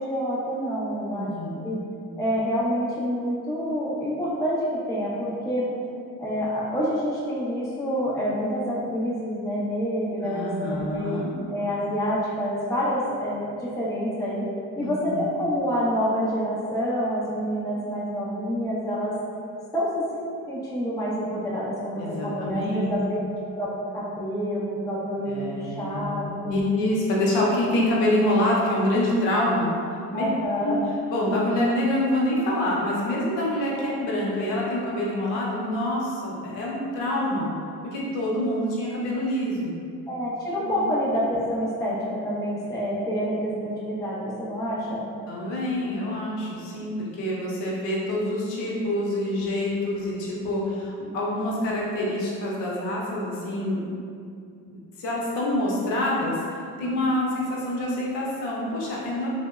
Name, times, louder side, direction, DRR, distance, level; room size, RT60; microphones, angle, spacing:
voice 1, 0.0-1.3 1.6-1.8 2.2-5.7 6.2-11.2 11.5-14.5 14.8-19.1 19.7-23.2 23.6-26.5 30.1-30.8 40.1-45.0 56.8-57.2, equal, 10° left, -8 dB, 0.5 m, -27 dB
voice 2, 1.1-1.8 10.2-11.3 14.8-15.2 22.0-23.1 25.3-29.7 30.1-30.3 30.6-30.8 31.1-37.5 37.9-39.7 40.7-40.8 45.3-53.9 54.7-59.3, left 1 dB, 70° left, -4 dB, 0.7 m, -26 dB
2.7 x 2.0 x 2.2 m, 2.4 s
hypercardioid pair, 50°, 45 cm